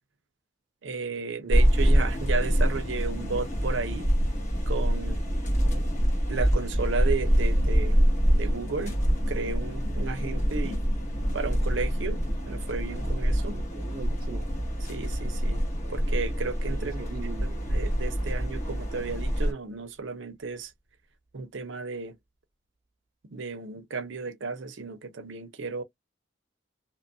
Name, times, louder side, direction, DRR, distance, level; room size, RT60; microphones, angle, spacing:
voice 1, 0.8-4.1 4.7-5.2 6.3-8.0 8.3-9.0 9.3-10.9 11.3-12.2 12.5-13.6 14.9-15.6 15.9-17.0 17.4-20.7 21.3-22.2 23.3-25.8, right 4 dB, 80° right, 0.6 m, -33 dB
sound 1, 1.5-19.5, equal, 40° left, 1.2 m, -26 dB
voice 2, 5.6-6.0 13.5-14.5 16.7-17.7, right 4 dB, 50° right, 0.3 m, -42 dB
sound 2, 19.6-20.7 21.3-21.4, right 1 dB, 10° right, 0.7 m, -46 dB
2.9 x 2.2 x 2.6 m
head